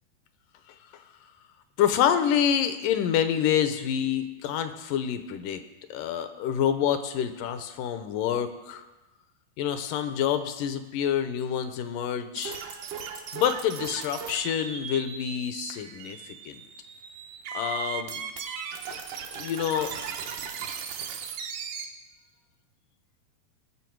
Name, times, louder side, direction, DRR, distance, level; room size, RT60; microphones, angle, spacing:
voice 1, 1.8-5.6 5.9-8.9 9.6-12.6 13.3-16.6 17.5-18.2 18.9-19.0 19.3-19.9, left 9 dB, 75° left, 9 dB, 2.1 m, -27 dB
sound 1, 12.4-21.8, right 7 dB, 70° right, 2.2 m, -37 dB
19.0 x 6.7 x 4.6 m, 1.1 s
omnidirectional pair, 4.2 m